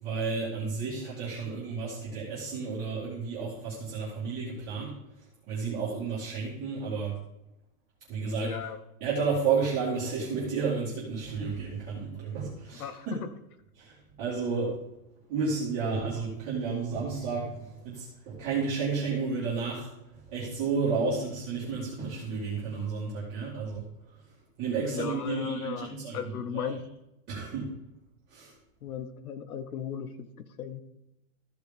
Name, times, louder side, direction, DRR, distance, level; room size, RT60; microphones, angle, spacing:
voice 1, 0.0-4.9 5.5-7.1 8.1-8.5 9.0-13.1 13.8-14.7 15.3-19.9 20.3-23.8 24.6-26.2 26.5-26.7 27.3-27.7 28.3-28.5, right 5 dB, 20° right, -9 dB, 2.4 m, -31 dB
voice 2, 8.4-8.8 12.7-13.3 24.9-26.8 28.8-30.8, left 7 dB, 75° left, 12 dB, 1.3 m, -36 dB
14.5 x 4.9 x 5.3 m, 0.90 s
supercardioid pair, 175°, 45 cm